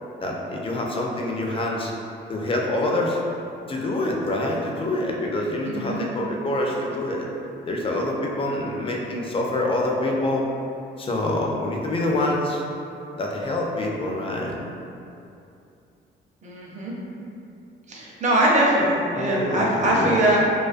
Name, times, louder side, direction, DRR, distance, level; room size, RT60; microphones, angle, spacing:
voice 1, 0.2-1.9 2.3-3.2 3.7-7.3 7.7-10.4 11.0-12.6 13.2-14.6 19.1-20.3, left 1 dB, 30° left, -1 dB, 0.4 m, -26 dB
voice 2, 5.6-6.1 16.4-16.9 17.9-20.4, right 1 dB, 35° right, -4 dB, 0.5 m, -22 dB
2.3 x 2.2 x 2.4 m, 2.7 s
cardioid pair, 90°, 20 cm